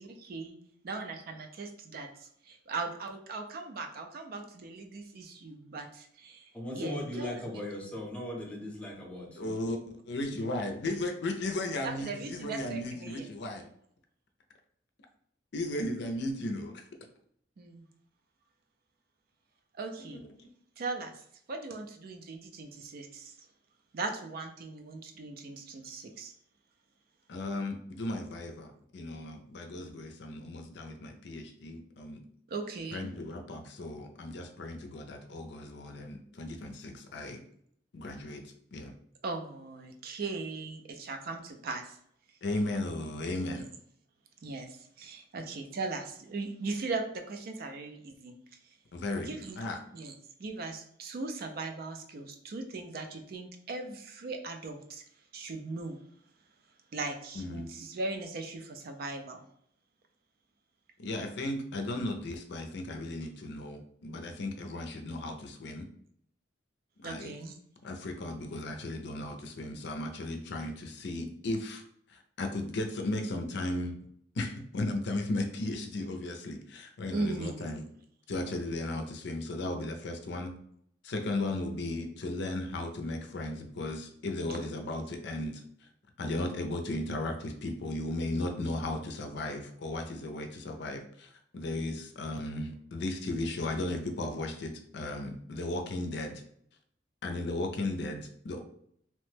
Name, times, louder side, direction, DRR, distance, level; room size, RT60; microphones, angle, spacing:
voice 1, 0.0-0.6 0.8-6.5 6.7-7.3 11.8-13.3 17.6-17.8 19.8-20.2 20.8-21.1 21.5-23.3 23.9-26.3 32.5-33.1 39.2-42.0 43.4-43.7 44.4-48.3 49.2-49.6 49.9-50.1 50.4-55.0 55.3-56.0 56.9-59.4 67.0-67.6 77.1-77.6, right 3 dB, 55° right, 5 dB, 0.4 m, -38 dB
voice 2, 6.5-9.5, left 1 dB, 5° left, -1 dB, 0.6 m, -38 dB
voice 3, 9.4-9.8 10.1-13.7 15.5-16.8 20.1-20.5 27.3-32.3 32.9-37.4 37.9-38.4 38.7-39.0 42.4-43.7 48.9-49.3 49.6-49.8 57.3-57.7 61.0-65.9 67.0-67.3 67.8-71.8 72.1-73.9 74.3-77.8 78.3-80.5 81.0-85.6 86.2-96.4 97.2-98.6, left 2 dB, 65° left, 5 dB, 0.5 m, -35 dB
3.0 x 2.1 x 3.2 m, 0.68 s
head